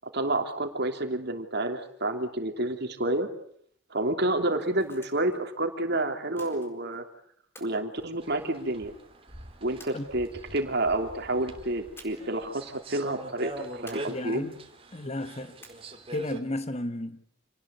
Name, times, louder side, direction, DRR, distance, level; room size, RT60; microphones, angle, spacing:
voice 1, 0.1-3.3 3.9-7.0 7.6-8.9 9.6-14.5, right 2 dB, 55° right, 3.1 m, -29 dB
sound 1, 4.5-5.4 6.4-7.0 7.5-8.8 9.8-10.6 12.0-12.4 12.7-12.8 13.9-14.6 15.6-16.2, left 1 dB, 10° left, 4.2 m, -52 dB
sound 2, 8.2-16.4, right 1 dB, 25° right, 3.1 m, -44 dB
voice 2, 14.1-14.5 14.9-15.6 16.1-17.2, left 1 dB, 30° left, 1.4 m, -33 dB
28.0 x 19.5 x 8.2 m
head